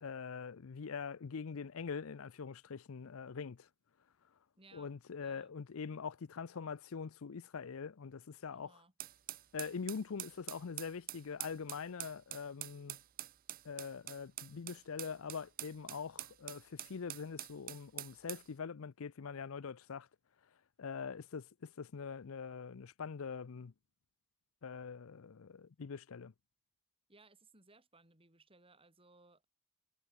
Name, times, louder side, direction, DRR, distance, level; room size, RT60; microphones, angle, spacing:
voice 1, 0.0-3.7 4.7-8.8 9.5-13.0 13.6-20.1 20.8-23.7 24.6-26.3, left 5 dB, 65° left, 0.5 m, -43 dB
voice 2, 4.6-4.9 5.2-5.5 8.5-8.9 27.1-29.5, right 3 dB, 25° right, 5.2 m, -64 dB
sound 1, 9.0-18.5, right 15 dB, 40° right, 0.5 m, -46 dB
head